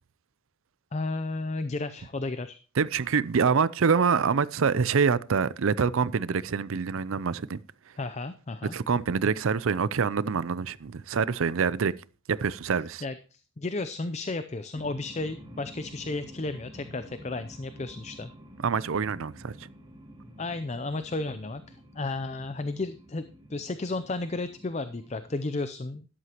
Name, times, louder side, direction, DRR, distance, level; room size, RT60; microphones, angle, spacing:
voice 1, 0.9-2.6 8.0-8.7 13.0-18.3 20.4-26.1, left 2 dB, 30° left, 0.5 m, -33 dB
voice 2, 2.8-7.6 8.7-11.9 12.3-13.0 18.6-19.5, right 5 dB, 70° right, 0.5 m, -25 dB
sound 1, 14.7-25.7, equal, 20° right, 2.3 m, -49 dB
12.5 x 11.0 x 2.9 m
head